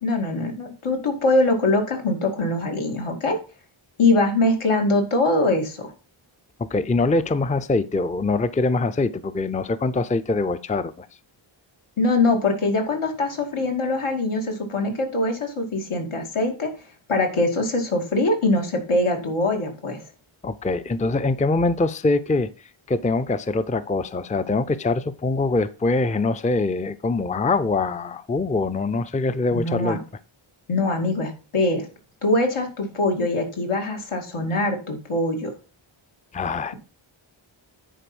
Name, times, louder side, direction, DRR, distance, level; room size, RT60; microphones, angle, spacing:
voice 1, 0.0-3.4 4.0-5.8 12.0-16.7 17.1-20.0 29.5-30.0 30.7-31.9 32.2-35.5, left 2 dB, 85° left, 2.5 m, -23 dB
voice 2, 6.6-11.1 20.4-22.5 22.9-30.0 36.3-36.7, left 3 dB, 15° left, 0.5 m, -23 dB
10.0 x 4.6 x 6.1 m
wide cardioid pair, 110°, 49 cm